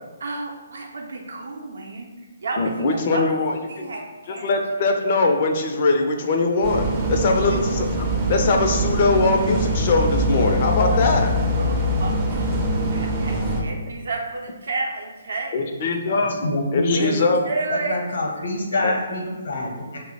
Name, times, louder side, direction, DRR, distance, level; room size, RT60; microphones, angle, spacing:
voice 1, 0.2-2.1 2.4-4.5 7.2-7.6 11.6-12.5 12.8-15.9 16.9-18.0, right 3 dB, 70° right, 0 dB, 0.6 m, -31 dB
voice 2, 2.6-3.9 4.3-11.3 15.5-16.4 16.7-17.4 18.8-18.9, left 3 dB, 45° left, 3 dB, 0.4 m, -21 dB
sound 1, 6.6-13.6, right 1 dB, 25° right, 0.5 m, -23 dB
voice 3, 16.1-17.1 17.7-20.0, left 2 dB, 70° left, -1 dB, 0.8 m, -26 dB
2.7 x 2.0 x 3.9 m, 1.2 s
figure-of-eight pair, 140°, 0 cm